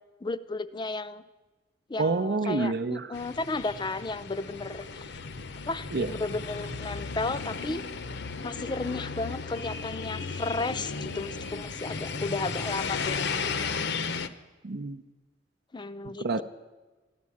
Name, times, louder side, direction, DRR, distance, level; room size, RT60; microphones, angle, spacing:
voice 1, 0.2-1.2 1.9-5.1 5.7-7.8 8.4-13.5 15.7-16.4, left 3 dB, 25° left, 13 dB, 0.5 m, -34 dB
voice 2, 2.0-3.1 5.9-6.1 14.6-15.0 16.2-16.4, right 3 dB, 60° right, 6 dB, 0.6 m, -27 dB
sound 1, 3.1-14.3, left 5 dB, 65° left, 0.7 m, -35 dB
13.5 x 11.5 x 8.4 m, 1.2 s
head